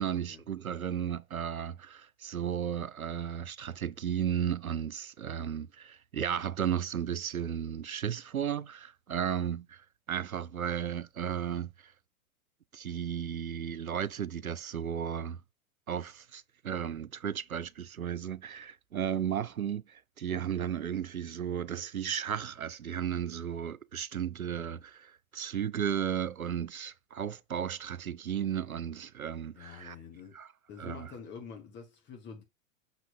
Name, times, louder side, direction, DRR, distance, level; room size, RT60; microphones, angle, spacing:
voice 1, 0.0-9.8 10.1-11.7 12.7-15.4 15.9-19.8 20.2-30.0 30.3-30.5 30.8-31.1, right 9 dB, 90° right, 0.5 m, -34 dB
voice 2, 29.5-30.4 30.7-32.4, left 6 dB, 25° left, 1.5 m, -47 dB
6.1 x 3.1 x 5.2 m
figure-of-eight pair, 100°, 41 cm